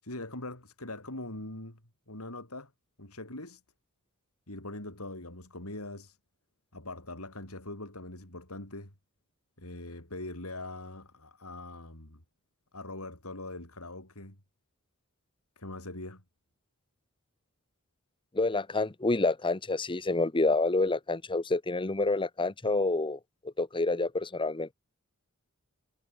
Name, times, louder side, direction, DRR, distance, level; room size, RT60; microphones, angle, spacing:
voice 1, 0.0-1.8 2.1-2.7 3.0-3.6 4.5-6.2 6.7-8.9 9.6-12.2 12.7-14.4 15.6-16.2, left 2 dB, 90° left, 7.4 m, -42 dB
voice 2, 18.3-23.2 23.6-24.7, left 2 dB, 25° left, 0.9 m, -28 dB
head